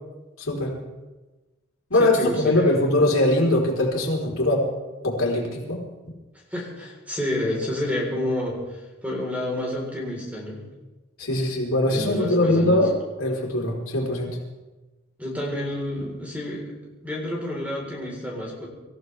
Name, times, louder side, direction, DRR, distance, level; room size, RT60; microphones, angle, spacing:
voice 1, 0.4-0.8 1.9-4.7 5.0-5.8 11.2-12.9 13.2-14.4, left 1 dB, 80° left, -2 dB, 4.1 m, -22 dB
voice 2, 2.0-2.8 6.5-8.7 9.0-10.6 11.8-12.9 15.2-16.8 17.0-18.7, left 1 dB, 5° right, -2 dB, 4.1 m, -29 dB
25.5 x 15.0 x 3.4 m, 1.1 s
head